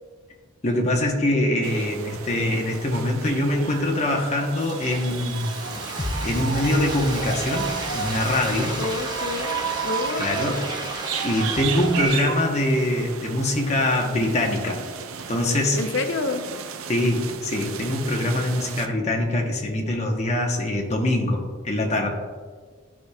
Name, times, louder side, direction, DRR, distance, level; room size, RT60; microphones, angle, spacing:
voice 1, 0.6-5.5 6.2-8.8 10.2-10.6 11.2-14.8 15.3-15.8 16.9-22.1, left 1 dB, 35° left, 1 dB, 0.9 m, -23 dB
sound 1, 1.6-18.9, right 6 dB, 85° right, 0.5 m, -34 dB
Frying (food), 4.2-12.1, right 2 dB, 20° right, 0.8 m, -33 dB
sound 2, 6.0-12.0, left 1 dB, 20° left, 0.4 m, -37 dB
voice 2, 8.8-9.6 9.8-10.7 15.8-16.4, left 3 dB, 65° left, 7 dB, 0.6 m, -28 dB
11.5 x 4.9 x 2.3 m, 1.5 s
head